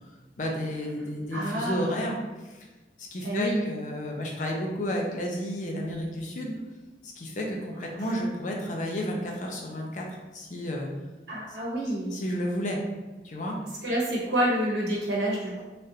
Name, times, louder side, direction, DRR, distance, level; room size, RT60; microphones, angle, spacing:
voice 1, 0.4-2.7 3.0-6.5 7.0-10.9 11.5-11.6 12.1-12.8 13.2-13.6, equal, 45° left, -1 dB, 0.5 m, -32 dB
voice 2, 1.3-1.9 3.2-3.6 8.0-8.1 11.3-12.2 13.8-15.6, right 1 dB, 70° right, -5 dB, 1.0 m, -28 dB
3.4 x 2.4 x 2.7 m, 1.1 s
head